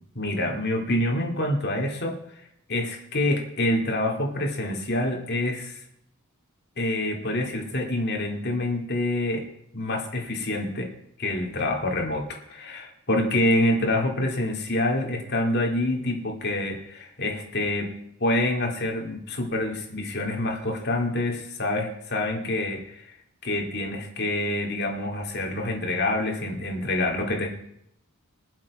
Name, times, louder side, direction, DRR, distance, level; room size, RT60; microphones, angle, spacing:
voice 1, 0.1-2.4 2.7-5.8 6.8-9.5 9.7-10.9 11.2-18.0 18.2-23.1 23.4-27.5, left 1 dB, 50° left, 1 dB, 2.4 m, -26 dB
21.0 x 7.5 x 4.8 m, 0.75 s
head